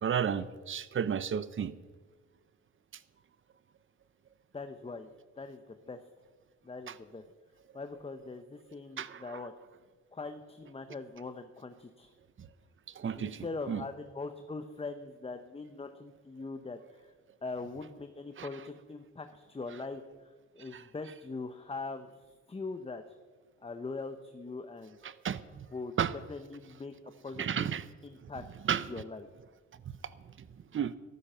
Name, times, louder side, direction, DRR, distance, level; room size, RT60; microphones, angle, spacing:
voice 1, 0.0-1.7 6.9-7.0 9.0-9.4 12.9-13.8 18.4-18.5 20.7-20.8 25.0-25.7 26.0-26.1 27.4-27.9 28.7-28.9 29.9-30.0 30.7-30.9, right 8 dB, 40° right, 15 dB, 0.9 m, -33 dB
voice 2, 4.5-5.1 5.4-6.0 6.6-7.2 7.7-9.5 10.1-12.1 13.1-17.1 17.4-20.0 20.6-22.1 22.5-23.0 23.6-25.0 25.7-25.9 26.3-26.9 27.2-27.7 28.0-28.4 28.9-29.3, left 3 dB, 20° left, 8 dB, 1.0 m, -41 dB
13.5 x 13.0 x 5.7 m, 1.4 s
cardioid pair, 90°, 30 cm